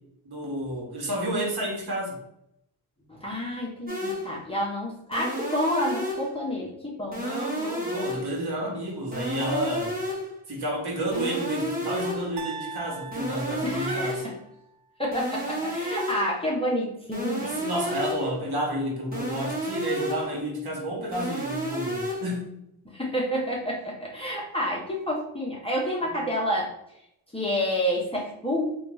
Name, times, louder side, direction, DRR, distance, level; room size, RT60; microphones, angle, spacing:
voice 1, 0.2-2.2 7.2-10.0 10.5-14.2 17.6-22.6 26.0-26.3, right 1 dB, 50° right, -2 dB, 1.5 m, -30 dB
voice 2, 3.1-7.2 13.6-14.3 15.0-17.5 22.8-26.7 27.3-28.8, equal, 10° left, -5 dB, 0.9 m, -29 dB
sound 1, 3.9-4.4 5.1-6.4 7.1-8.4 9.1-10.4 11.1-12.4 13.1-14.4 15.1-16.4 17.1-18.4 19.1-20.4 21.1-22.4, equal, 20° right, 1.4 m, -32 dB
sound 2, 12.4-14.5, right 5 dB, 65° right, 0.7 m, -40 dB
3.2 x 2.6 x 3.1 m, 0.80 s
cardioid pair, 70°, 48 cm